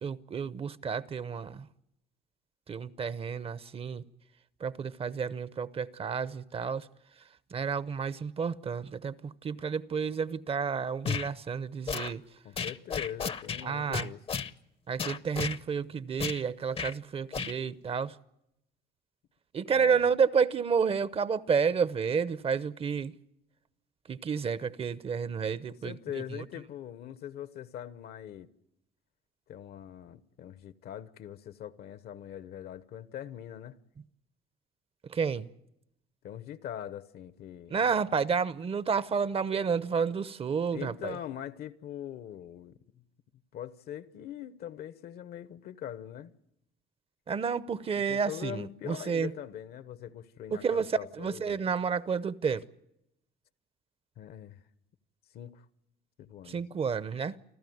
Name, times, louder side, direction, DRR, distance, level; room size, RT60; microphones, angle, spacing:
voice 1, 0.0-1.7 2.7-4.0 4.6-6.9 7.5-12.2 13.6-14.1 14.9-18.2 19.5-23.1 24.1-26.4 35.1-35.5 37.7-41.2 47.3-49.3 50.5-52.6 56.5-57.4, right 6 dB, 35° right, 0.8 m, -30 dB
sound 1, 11.0-11.3 11.9-12.1 12.6-13.6 13.9-14.5 15.0-15.6 16.2-16.4 16.7-16.9 17.3-17.5, left 6 dB, 35° left, 0.7 m, -33 dB
voice 2, 12.4-14.4 19.7-20.0 25.7-28.5 29.5-33.8 36.2-37.9 40.7-43.0 43.5-46.3 47.9-51.6 54.2-54.6 55.3-55.6 56.2-56.6, left 10 dB, 65° left, 1.1 m, -42 dB
29.5 x 13.0 x 9.4 m
cardioid pair, 110°, 17 cm